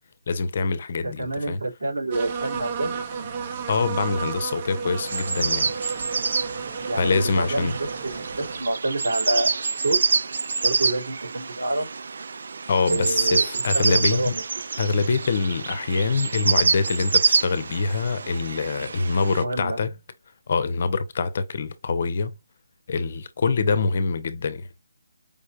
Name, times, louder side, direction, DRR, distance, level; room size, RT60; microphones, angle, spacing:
voice 1, 0.3-1.6 3.7-5.7 6.9-7.7 12.7-14.3 14.8-19.9 20.5-22.3 22.9-24.7, left 4 dB, 45° left, 0.8 m, -25 dB
voice 2, 1.0-3.3 6.8-9.6 9.8-10.0 10.6-11.9 12.9-14.4 19.4-19.8, right 2 dB, 80° right, 3.1 m, -28 dB
sound 1, 2.1-8.6, right 5 dB, 35° right, 1.1 m, -32 dB
sound 2, 5.1-19.4, right 5 dB, 65° right, 0.4 m, -27 dB
5.2 x 3.2 x 2.5 m
hypercardioid pair, 165°, 0 cm